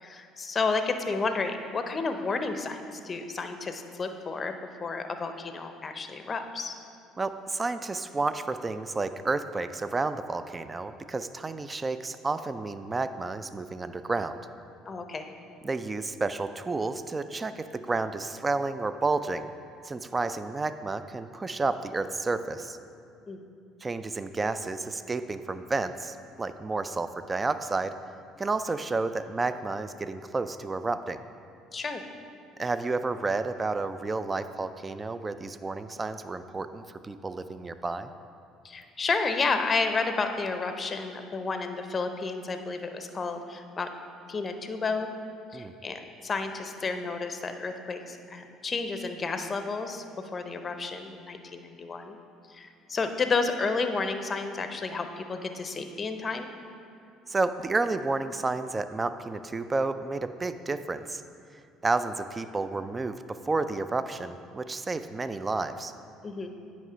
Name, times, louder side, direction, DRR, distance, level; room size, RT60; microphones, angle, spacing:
voice 1, 0.0-6.7 14.9-15.3 23.3-23.4 31.7-32.0 38.6-43.9 44.3-45.1 45.5-50.0 50.3-52.2 52.5-56.5 66.2-66.5, left 4 dB, 35° left, 7 dB, 0.6 m, -31 dB
voice 2, 7.2-14.4 15.6-19.5 19.8-22.8 23.8-27.9 28.4-31.2 32.6-38.1 45.5-45.7 57.3-61.2 61.8-65.9, right 3 dB, 25° right, 11 dB, 0.4 m, -31 dB
9.1 x 3.1 x 5.6 m, 2.5 s
hypercardioid pair, 70°, 0 cm